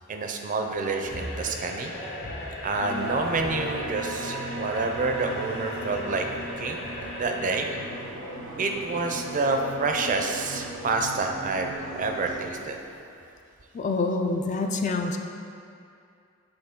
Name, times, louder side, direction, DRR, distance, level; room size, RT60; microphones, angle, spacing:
voice 1, 0.1-1.9 2.6-6.3 6.6-7.7 8.6-12.8, right 3 dB, 40° right, 4 dB, 0.5 m, -28 dB
sound 1, 0.6-13.0, left 1 dB, 85° left, 1.2 m, -46 dB
sound 2, 1.0-7.8, left 1 dB, 50° left, 0.8 m, -39 dB
sound 3, 2.8-12.5, right 1 dB, 90° right, 0.7 m, -37 dB
voice 2, 13.7-15.2, left 3 dB, 35° left, 5 dB, 0.3 m, -26 dB
7.9 x 4.0 x 3.6 m, 2.5 s
head